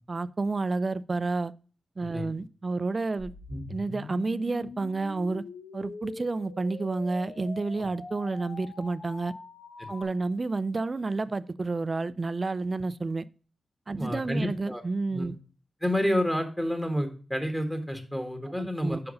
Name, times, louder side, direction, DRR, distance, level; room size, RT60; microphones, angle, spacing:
voice 1, 0.1-1.5 2.0-3.3 3.7-5.4 5.7-9.3 9.9-13.3 13.9-15.3 18.6-19.0, right 3 dB, 45° right, 0.3 m, -30 dB
sound 1, 3.2-10.0, left 3 dB, 75° left, 0.9 m, -43 dB
voice 2, 14.0-14.8 15.1-15.3 15.8-19.0, equal, 10° left, 1.5 m, -29 dB
5.3 x 4.7 x 6.3 m
cardioid pair, 60°, 0 cm